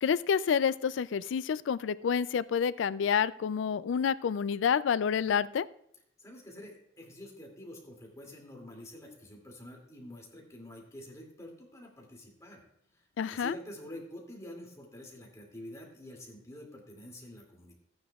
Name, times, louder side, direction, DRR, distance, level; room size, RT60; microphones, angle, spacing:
voice 1, 0.0-5.7 13.2-13.6, left 7 dB, 90° left, 17 dB, 0.3 m, -28 dB
voice 2, 6.2-12.6 12.9-17.7, left 1 dB, 15° left, -1 dB, 2.4 m, -47 dB
14.5 x 9.6 x 2.4 m, 0.74 s
head